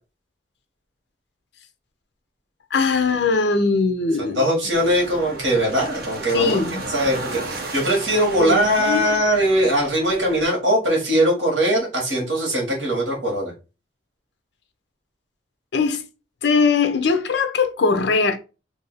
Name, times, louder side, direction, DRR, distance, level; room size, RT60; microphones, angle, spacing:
voice 1, 2.7-4.4 6.3-6.8 8.4-9.0 15.7-16.0 16.4-18.4, left 4 dB, 65° left, 0.5 m, -20 dB
voice 2, 4.3-6.6 6.9-13.5, equal, 75° right, 1.4 m, -20 dB
sound 1, 4.7-10.4, right 2 dB, 55° right, 0.8 m, -34 dB
2.6 x 2.6 x 3.9 m
head